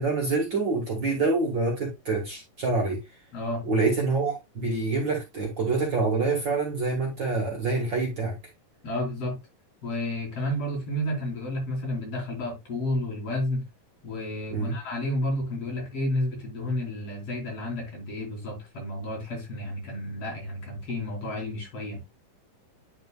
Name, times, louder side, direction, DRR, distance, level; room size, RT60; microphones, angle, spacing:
voice 1, 0.0-3.0 3.7-8.3 14.5-14.7, right 3 dB, 40° right, 2.1 m, -26 dB
voice 2, 3.3-3.6 8.8-9.4 9.8-13.6 14.0-22.0, left 1 dB, 50° left, 3.9 m, -31 dB
10.5 x 4.6 x 2.3 m
omnidirectional pair, 3.5 m